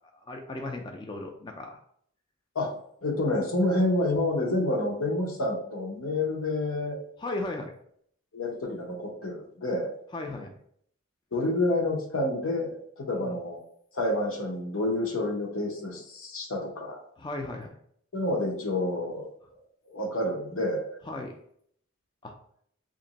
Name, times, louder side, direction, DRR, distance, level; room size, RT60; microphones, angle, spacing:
voice 1, 0.0-1.8 7.2-7.8 10.1-10.5 13.1-13.4 17.2-17.7 21.0-21.3 22.2-22.3, left 2 dB, 20° left, 3 dB, 0.3 m, -36 dB
voice 2, 3.0-7.0 8.3-9.9 11.3-13.6 13.9-17.0 18.1-19.3 19.9-20.9, left 1 dB, 85° left, 1 dB, 0.8 m, -28 dB
2.9 x 2.5 x 4.0 m, 0.66 s
head